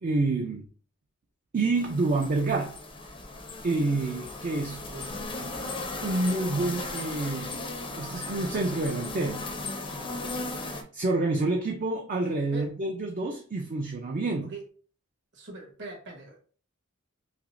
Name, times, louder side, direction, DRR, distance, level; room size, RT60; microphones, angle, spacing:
voice 1, 0.0-0.7 1.5-2.8 3.6-4.8 5.4-5.5 6.0-7.6 8.0-9.5 10.5-14.5, right 2 dB, 40° right, 0.4 m, -28 dB
sound 1, 1.8-10.8, left 2 dB, 25° left, 0.5 m, -37 dB
voice 2, 4.9-5.2 9.9-10.2 12.5-12.7 14.4-14.6 15.3-16.4, right 3 dB, 55° right, 1.2 m, -42 dB
5.7 x 2.0 x 2.5 m
head